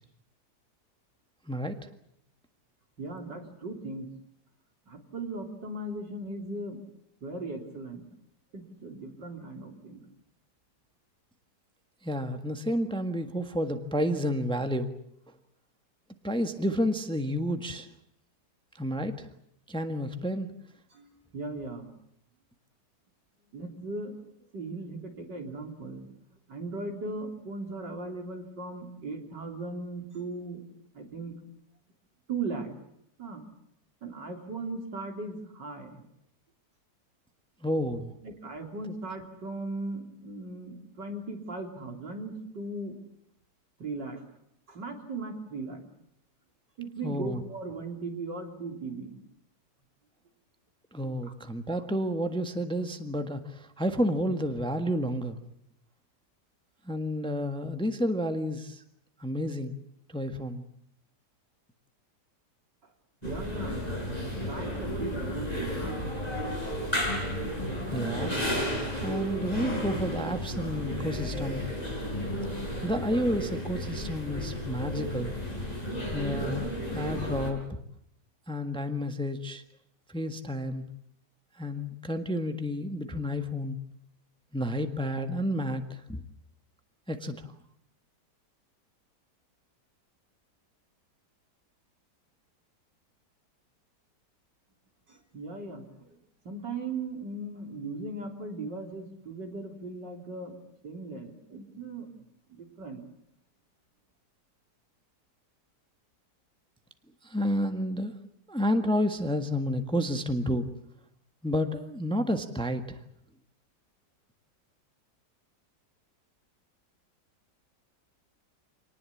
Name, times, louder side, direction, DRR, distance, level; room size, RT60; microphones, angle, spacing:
voice 1, 1.5-1.8 12.0-14.9 16.2-17.9 18.7-19.3 19.7-20.5 37.6-38.1 47.0-47.4 50.9-55.4 56.8-58.8 59.2-59.8 60.1-60.6 67.9-68.5 69.0-71.6 72.8-75.3 76.1-77.8 78.5-79.6 80.1-80.8 81.6-83.8 84.5-86.2 87.1-87.5 107.2-108.1 108.5-110.7 111.4-113.0, equal, 5° left, 7 dB, 1.4 m, -30 dB
voice 2, 3.0-4.1 4.9-6.8 7.2-8.0 8.5-10.0 20.9-21.9 23.5-24.1 24.5-26.1 26.5-30.6 30.9-31.4 32.3-32.7 33.2-33.4 34.0-36.0 38.2-43.0 43.8-44.2 44.7-45.8 46.8-49.2 51.0-51.3 63.2-63.8 64.4-66.1 95.1-96.2 96.4-100.5 100.8-102.2 102.5-103.0, right 3 dB, 80° right, 3 dB, 4.1 m, -38 dB
sound 1, 63.2-77.5, equal, 20° left, 6.4 m, -33 dB
26.5 x 19.5 x 8.6 m, 0.73 s
omnidirectional pair, 1.9 m